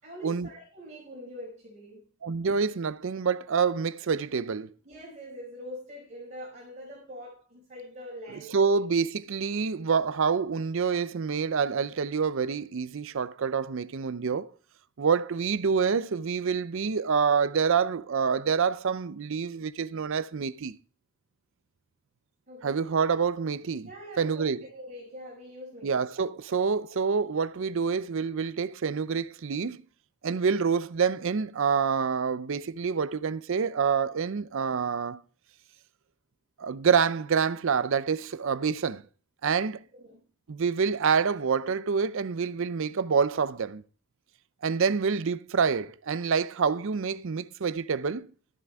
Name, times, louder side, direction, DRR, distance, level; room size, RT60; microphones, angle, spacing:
voice 1, 0.0-2.0 4.8-8.8 22.5-22.8 23.8-25.9 39.9-40.2, equal, 35° right, 5.1 m, -44 dB
voice 2, 2.2-4.7 8.3-14.5 15.0-20.8 22.6-23.9 24.2-24.7 25.8-29.8 30.2-35.2 36.6-39.0 39.4-39.8 40.5-43.8 44.6-48.3, right 6 dB, 60° right, 0.5 m, -27 dB
13.5 x 10.5 x 3.5 m
head